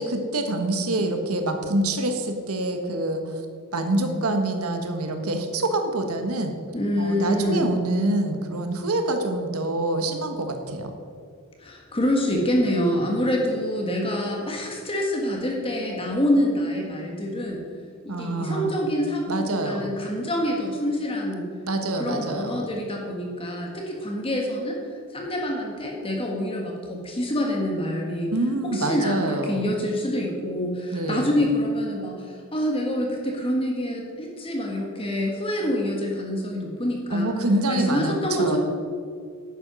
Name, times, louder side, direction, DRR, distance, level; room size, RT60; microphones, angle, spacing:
voice 1, 0.0-3.3 3.7-6.6 7.0-10.9 18.1-18.7 19.3-19.9 21.7-22.6 28.3-29.6 30.9-31.3 37.1-38.6, right 2 dB, 85° right, 5 dB, 1.4 m, -26 dB
voice 2, 6.7-7.7 11.6-17.7 18.1-21.5 21.8-24.8 25.1-28.3 28.6-37.3 37.7-38.6, equal, 25° left, 0 dB, 1.6 m, -26 dB
11.0 x 8.9 x 6.1 m, 2.2 s
head